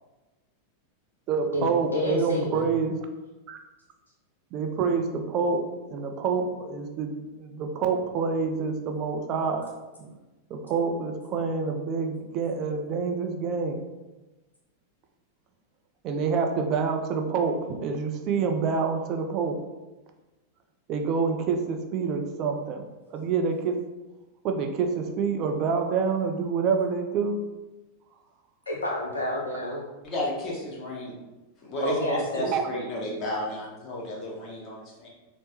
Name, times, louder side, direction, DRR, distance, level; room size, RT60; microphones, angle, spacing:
voice 1, 1.3-3.0 3.5-3.6 4.5-9.7 10.0-10.1 10.5-13.8 16.0-19.6 20.9-23.8 24.4-27.4 32.5-32.7, right 5 dB, 35° right, 4 dB, 0.4 m, -27 dB
voice 2, 1.9-2.7 28.7-29.8 31.8-32.5, left 1 dB, 70° left, -2 dB, 0.4 m, -29 dB
voice 3, 30.0-31.1 31.6-35.1, left 1 dB, 35° left, -3 dB, 1.0 m, -32 dB
4.4 x 2.1 x 2.9 m, 1.1 s
figure-of-eight pair, 90°, 0 cm